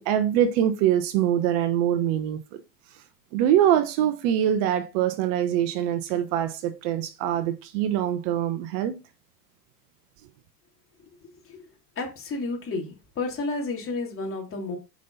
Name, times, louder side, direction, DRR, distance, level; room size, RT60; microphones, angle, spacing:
voice 1, 0.0-2.6 3.3-9.0, right 10 dB, 55° right, 1.1 m, -24 dB
voice 2, 12.0-12.9 13.2-14.8, left 3 dB, 25° left, 3.1 m, -31 dB
6.4 x 5.6 x 4.0 m
hypercardioid pair, 105°, 47 cm